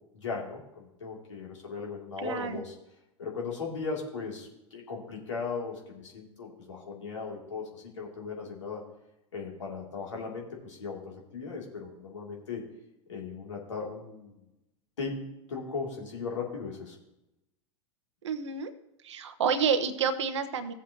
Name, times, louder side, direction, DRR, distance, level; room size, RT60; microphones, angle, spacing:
voice 1, 0.1-2.7 3.2-8.8 9.3-12.6 13.1-14.3 15.0-15.2 15.5-17.0, left 4 dB, 75° left, -2 dB, 2.7 m, -37 dB
voice 2, 2.2-2.6 18.2-18.7 19.0-20.7, right 6 dB, 70° right, 11 dB, 1.0 m, -29 dB
16.5 x 7.3 x 2.9 m, 0.89 s
figure-of-eight pair, 85°, 16 cm